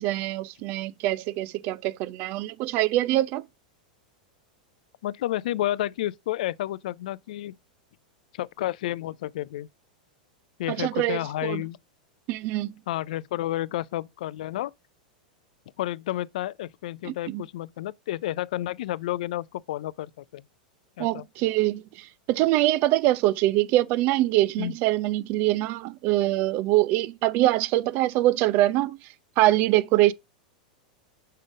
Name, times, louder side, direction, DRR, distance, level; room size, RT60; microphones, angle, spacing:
voice 1, 0.0-3.4 10.7-11.6 12.3-12.7 17.0-17.4 21.0-29.0 29.4-30.1, right 16 dB, 45° right, 0.4 m, -24 dB
voice 2, 5.0-7.5 8.3-9.7 10.6-11.8 12.9-14.7 15.8-20.4 21.0-21.2 24.6-24.8, left 14 dB, 70° left, 0.3 m, -31 dB
5.5 x 3.7 x 4.9 m
hypercardioid pair, 120°, 4 cm